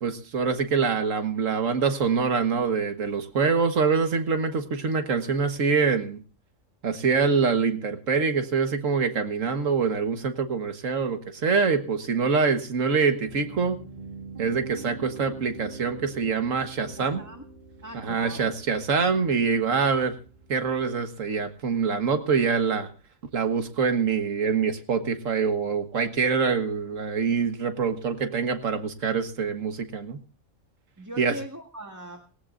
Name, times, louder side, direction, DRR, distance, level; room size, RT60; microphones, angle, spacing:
voice 1, 0.0-6.2 6.8-13.8 14.4-17.2 17.9-20.1 20.5-22.9 23.3-30.2 31.2-31.4, right 5 dB, 75° right, 8 dB, 1.8 m, -25 dB
Piano, 13.3-20.8, right 3 dB, 40° right, 2.3 m, -44 dB
voice 2, 17.0-17.4 17.8-18.5 31.0-32.2, right 1 dB, 15° right, 2 dB, 1.7 m, -40 dB
18.5 x 18.0 x 2.6 m, 0.36 s
omnidirectional pair, 1.4 m